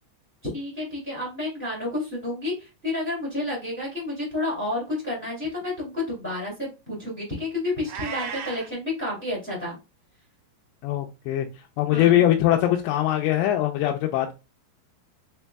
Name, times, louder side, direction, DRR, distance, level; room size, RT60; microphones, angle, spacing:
voice 1, 0.5-9.8 11.9-12.2, left 2 dB, 15° left, -5 dB, 0.4 m, -30 dB
Meow, 7.8-8.7, right 7 dB, 65° right, 2.5 m, -34 dB
voice 2, 10.8-11.5 11.8-14.3, left 12 dB, 85° left, 1 dB, 2.6 m, -22 dB
6.3 x 2.6 x 2.2 m, 0.26 s
omnidirectional pair, 4.7 m